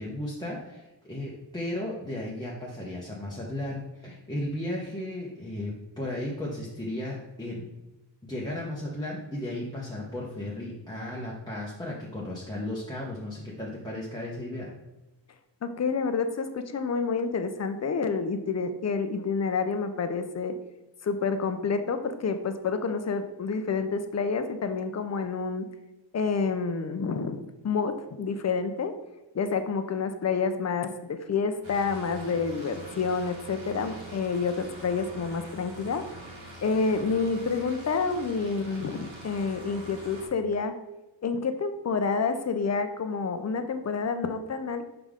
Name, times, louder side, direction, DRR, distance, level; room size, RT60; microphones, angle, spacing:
voice 1, 0.0-7.6 8.2-14.7, left 1 dB, 10° left, -5 dB, 0.9 m, -35 dB
voice 2, 15.6-20.6 21.0-25.7 26.1-28.9 29.3-36.0 36.6-40.7 41.2-44.8, left 5 dB, 35° left, 9 dB, 0.6 m, -28 dB
sound 1, 31.6-40.3, right 1 dB, 80° right, 1.9 m, -44 dB
5.4 x 4.9 x 3.6 m, 1.0 s
wide cardioid pair, 100°, 45 cm